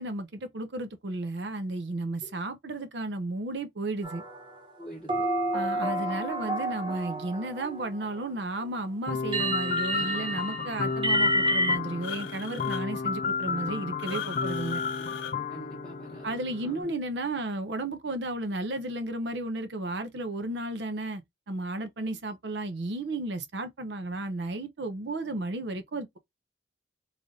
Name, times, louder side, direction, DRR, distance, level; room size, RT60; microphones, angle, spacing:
voice 1, 0.0-4.2 5.5-14.8 16.2-21.2 21.5-26.2, right 2 dB, 65° right, 0.6 m, -33 dB
sound 1, 4.0-4.6 5.1-8.2 9.3-11.8, right 1 dB, 25° right, 1.1 m, -29 dB
voice 2, 4.8-5.3 15.5-16.9, right 1 dB, ahead, 1.1 m, -46 dB
sound 2, 9.1-16.9, left 5 dB, 40° left, 0.3 m, -32 dB
sound 3, 12.0-12.8 14.0-15.3, left 7 dB, 85° left, 0.7 m, -39 dB
3.2 x 2.5 x 3.8 m
head